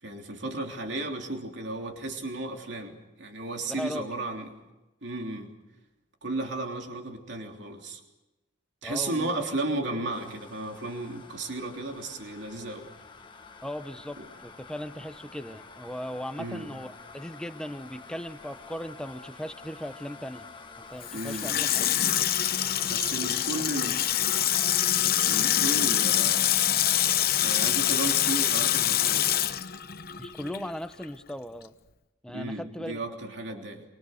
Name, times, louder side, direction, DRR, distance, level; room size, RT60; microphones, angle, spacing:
voice 1, 0.0-4.5 5.0-5.5 6.2-8.0 8.8-12.9 14.2-14.3 16.4-16.7 21.1-21.6 22.8-24.0 25.0-26.4 27.4-29.5 32.3-33.8, right 2 dB, 60° right, 2 dB, 3.3 m, -34 dB
voice 2, 3.7-4.1 8.8-9.4 13.6-20.5 20.8-21.9 30.2-31.7 32.2-33.0 33.5-33.6, equal, 5° left, 10 dB, 0.9 m, -38 dB
sound 1, 10.1-24.7, left 4 dB, 25° left, 1.3 m, -48 dB
Water tap faucet / Sink (filling or washing), 21.0-30.7 31.0-31.1, left 11 dB, 50° left, 0.9 m, -25 dB
26.0 x 24.5 x 6.6 m, 1.1 s
head